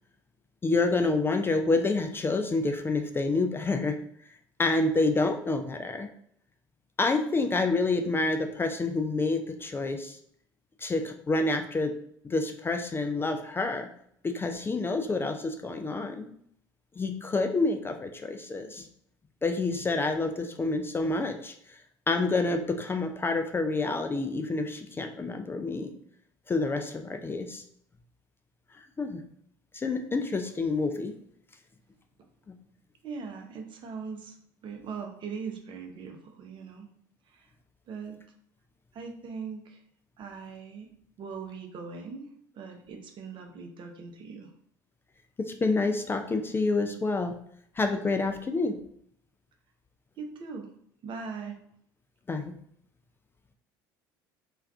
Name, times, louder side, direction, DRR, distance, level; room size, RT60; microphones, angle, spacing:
voice 1, 0.6-4.0 4.6-6.1 7.0-10.2 10.8-11.9 12.2-13.9 14.2-16.3 17.0-18.9 19.4-21.8 22.1-25.9 26.5-27.6 29.0-29.2 29.7-31.2 32.5-32.6 45.4-47.3 47.8-48.8 52.3-52.5, left 3 dB, 20° left, 6 dB, 0.3 m, -28 dB
voice 2, 33.0-34.4 34.6-36.9 37.3-37.5 37.9-38.2 38.9-39.8 40.2-40.9 41.2-44.5 50.2-50.7 51.0-51.6, right 5 dB, 50° right, 3 dB, 0.6 m, -40 dB
2.4 x 2.3 x 3.3 m, 0.68 s
hypercardioid pair, 70°, 11 cm